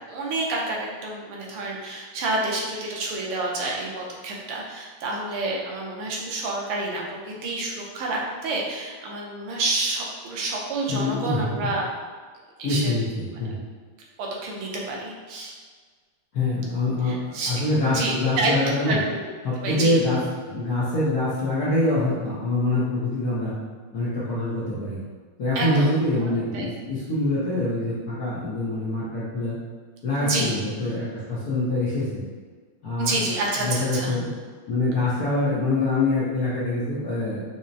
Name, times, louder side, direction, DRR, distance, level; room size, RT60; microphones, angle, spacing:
voice 1, 0.0-11.9 12.6-12.9 14.2-15.5 17.0-17.6 17.9-19.2 19.6-19.9 25.5-25.9 26.2-26.3 26.5-26.7 30.2-30.5 33.0-34.2, right 2 dB, 80° right, -2 dB, 1.6 m, -28 dB
voice 2, 10.9-11.7 12.6-13.6 16.3-19.0 19.4-20.2 20.5-23.6 23.9-25.0 25.4-29.6 30.0-32.2 32.8-33.2 33.6-34.3 34.7-37.4, left 2 dB, 65° left, -9 dB, 0.9 m, -25 dB
5.8 x 2.0 x 2.6 m, 1.5 s
omnidirectional pair, 2.4 m